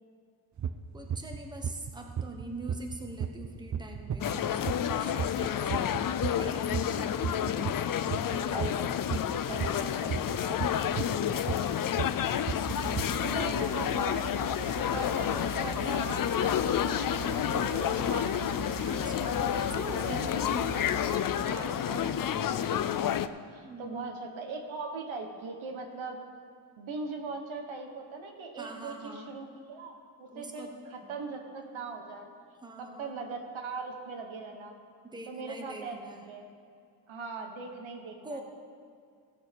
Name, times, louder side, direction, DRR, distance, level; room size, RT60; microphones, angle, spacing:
sound 1, 0.6-0.7 1.1-1.4 1.6-7.9 8.1-13.0, right 8 dB, 40° right, 0.6 m, -33 dB
voice 1, 0.9-8.7 9.5-10.2 11.5-12.1 12.4-13.8 18.7-20.6 21.5-22.1 23.6-24.1 28.5-29.4 30.3-30.7 31.0-31.1 32.6-33.2 35.0-36.3 38.2-38.4, right 2 dB, 10° right, 2 dB, 1.1 m, -45 dB
sound 2, 4.2-23.3, left 9 dB, 45° left, 0.4 m, -30 dB
voice 2, 8.5-8.8 9.5-10.6 13.2-14.2 14.9-18.9 19.9-20.8 21.3-22.4 22.7-26.2 26.8-32.3 32.8-34.8 35.3-36.0 36.3-36.4 37.1-38.4, right 4 dB, 75° right, 3 dB, 1.6 m, -40 dB
sound 3, 12.6-21.2, right 8 dB, 60° right, 1.1 m, -42 dB
16.0 x 6.4 x 5.4 m, 2.2 s
cardioid pair, 110°, 47 cm